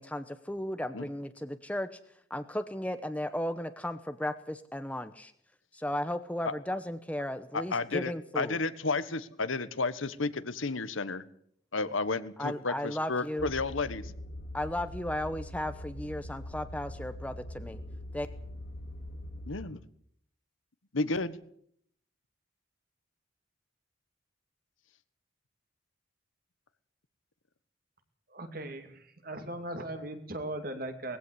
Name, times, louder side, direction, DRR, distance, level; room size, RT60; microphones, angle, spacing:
voice 1, 0.0-2.0 2.3-5.3 5.7-8.6 12.4-13.5 14.5-17.8 18.1-18.3, left 1 dB, 5° left, 10 dB, 0.9 m, -35 dB
voice 2, 7.7-11.2 11.7-14.1 19.5-19.8 20.9-21.4, left 3 dB, 80° left, 13 dB, 1.4 m, -32 dB
sound 1, 13.4-19.7, left 1 dB, 50° left, 2.9 m, -42 dB
voice 3, 28.3-31.2, right 1 dB, 45° right, 7 dB, 2.5 m, -38 dB
20.0 x 16.0 x 8.2 m, 0.69 s
head